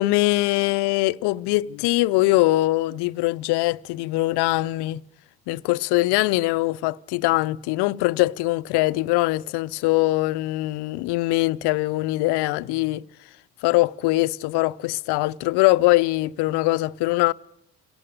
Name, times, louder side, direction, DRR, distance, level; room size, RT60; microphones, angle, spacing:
voice 1, 0.0-5.0 5.5-13.0 13.6-17.3, left 19 dB, 55° left, 0.8 m, -22 dB
27.5 x 17.5 x 6.8 m
figure-of-eight pair, 55°, 48 cm